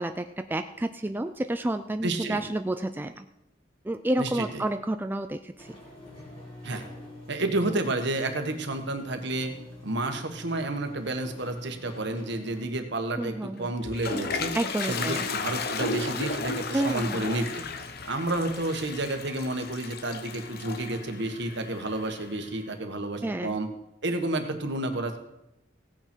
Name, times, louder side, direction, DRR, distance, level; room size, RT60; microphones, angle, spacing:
voice 1, 0.0-3.3 3.8-5.8 13.2-13.7 14.5-15.3 16.7-17.3 23.2-23.6, right 1 dB, 10° right, 8 dB, 0.4 m, -30 dB
voice 2, 2.0-2.4 4.2-4.6 6.6-6.8 7.3-9.5 9.8-14.6 14.9-17.6 18.0-23.7 24.0-25.2, right 2 dB, 65° right, 6 dB, 1.5 m, -30 dB
sound 1, 5.6-12.7, left 1 dB, 30° left, 4.9 m, -46 dB
Toilet flush, 13.6-22.4, left 4 dB, 55° left, 0.9 m, -34 dB
16.5 x 8.9 x 4.5 m, 0.87 s
head